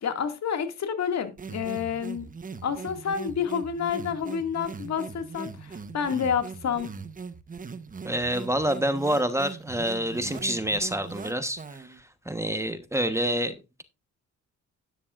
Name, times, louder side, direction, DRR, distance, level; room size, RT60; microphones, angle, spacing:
voice 1, 0.0-2.3 2.6-6.9, left 7 dB, 60° left, 2.2 m, -29 dB
sound 1, 1.4-12.0, right 5 dB, 25° right, 1.1 m, -40 dB
voice 2, 8.0-13.8, right 1 dB, 10° right, 1.1 m, -28 dB
12.5 x 9.8 x 2.5 m
cardioid pair, 90°, 30 cm